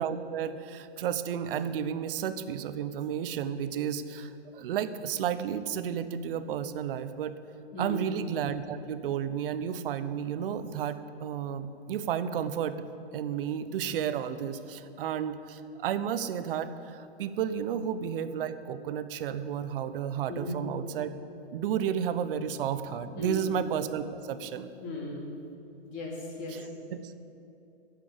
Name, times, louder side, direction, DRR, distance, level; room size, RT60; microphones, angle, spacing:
voice 1, 0.0-7.3 7.8-12.8 13.1-21.1 21.5-24.7 26.9-27.1, right 8 dB, 55° right, 12 dB, 0.7 m, -32 dB
voice 2, 7.7-8.1 20.3-20.6 23.1-23.5 24.8-25.3 25.8-26.7, left 2 dB, 35° left, -2 dB, 2.6 m, -36 dB
8.4 x 7.6 x 8.7 m, 2.8 s
hypercardioid pair, 145°, 33 cm